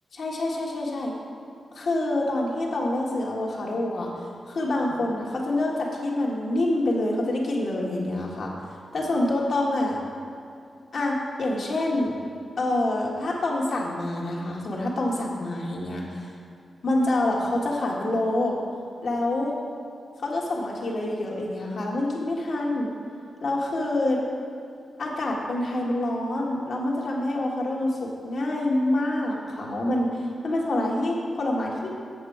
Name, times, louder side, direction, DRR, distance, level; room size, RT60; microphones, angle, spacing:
voice 1, 0.2-1.1 1.7-4.1 4.5-8.5 8.9-10.0 10.9-12.1 12.6-16.3 16.8-18.6 19.0-19.6 20.2-22.9 23.4-24.2 25.0-30.2 30.4-31.9, left 1 dB, 70° left, -2 dB, 1.5 m, -26 dB
7.8 x 6.7 x 4.8 m, 2.5 s
cardioid pair, 70°, 0 cm